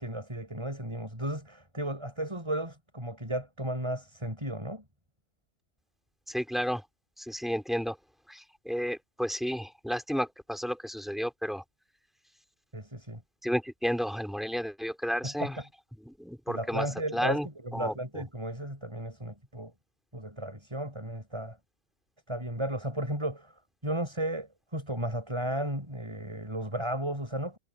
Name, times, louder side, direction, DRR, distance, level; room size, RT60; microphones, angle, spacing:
voice 1, 0.0-4.8 12.7-13.2 15.2-15.5 16.5-19.7 20.1-21.6 22.3-23.5 23.8-27.6, right 1 dB, 20° right, 6.9 m, -34 dB
voice 2, 6.3-6.8 7.2-8.0 8.3-11.6 13.4-15.6 16.0-18.2, equal, ahead, 4.3 m, -32 dB
omnidirectional pair, 1.4 m